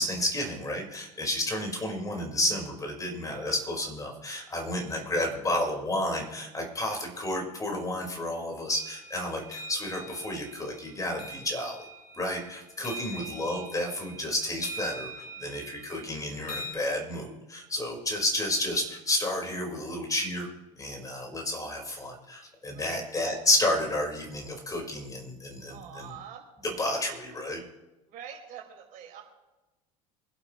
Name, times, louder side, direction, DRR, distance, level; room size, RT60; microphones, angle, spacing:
voice 1, 0.0-11.8 12.2-20.5 20.8-26.2 26.6-27.6, left 1 dB, 20° left, 1 dB, 4.9 m, -31 dB
sound 1, 8.7-16.7, equal, 85° left, 3.0 m, -43 dB
voice 2, 25.7-26.4 28.1-29.2, right 9 dB, 50° right, 0 dB, 5.2 m, -44 dB
26.5 x 12.0 x 3.2 m, 1.0 s
hypercardioid pair, 75°, 18 cm